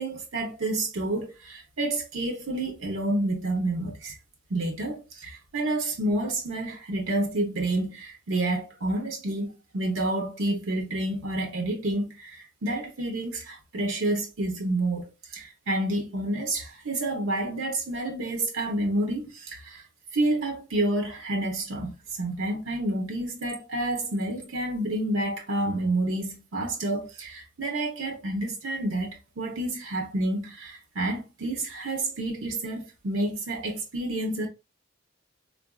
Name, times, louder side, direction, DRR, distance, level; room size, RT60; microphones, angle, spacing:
voice 1, 0.0-4.2 4.5-19.8 20.1-34.5, right 1 dB, 85° right, 0.7 m, -29 dB
3.9 x 2.5 x 2.2 m
head